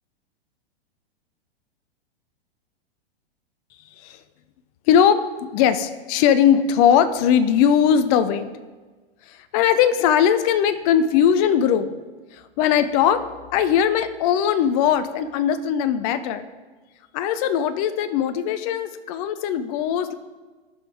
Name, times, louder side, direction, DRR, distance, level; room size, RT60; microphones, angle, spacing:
voice 1, 4.9-8.5 9.3-11.9 12.3-13.3 13.5-16.5 17.1-20.1, left 8 dB, 35° left, 11 dB, 0.5 m, -20 dB
15.5 x 5.5 x 3.4 m, 1.3 s
hypercardioid pair, 105°, 31 cm